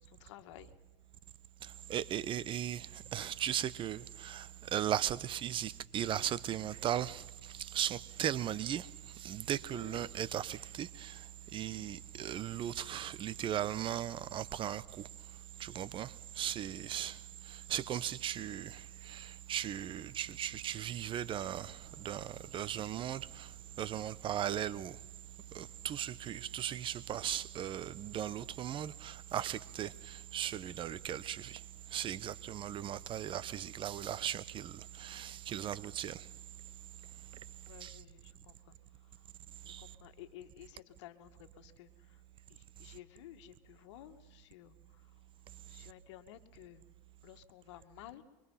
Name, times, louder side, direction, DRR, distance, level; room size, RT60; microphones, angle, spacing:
voice 1, 0.0-0.7 9.7-10.1 16.7-16.8 37.6-39.2 39.6-42.2 42.5-45.1 45.7-46.8 47.2-48.2, left 13 dB, 75° left, 2.0 m, -54 dB
voice 2, 1.9-2.9 3.1-7.2 7.6-8.9 9.2-11.1 11.5-14.8 15.6-17.2 17.7-18.8 19.1-21.8 22.0-23.5 23.8-24.9 25.5-31.6 31.9-34.7 35.0-36.2 37.8-37.9 39.7-39.8, right 10 dB, 35° right, 0.8 m, -37 dB
sound 1, 20.0-27.0, right 6 dB, 85° right, 3.1 m, -63 dB
26.0 x 24.5 x 5.7 m
supercardioid pair, 120°, 15 cm